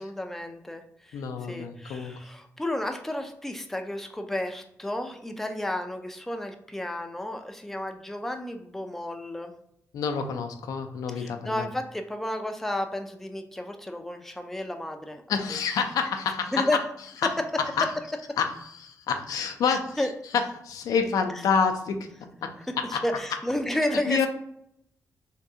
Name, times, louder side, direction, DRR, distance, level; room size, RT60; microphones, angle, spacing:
voice 1, 0.0-9.5 11.1-15.2 16.5-16.8 18.3-18.4 19.7-20.1 22.7-24.3, left 1 dB, 5° left, 5 dB, 0.4 m, -32 dB
voice 2, 1.1-2.1 9.9-11.7 15.3-16.7 17.2-17.3 17.6-17.9 18.4-20.1 20.3-22.1 22.4-23.0 24.1-24.3, left 6 dB, 80° left, 5 dB, 0.4 m, -28 dB
3.5 x 2.2 x 2.7 m, 0.76 s
cardioid pair, 70°, 6 cm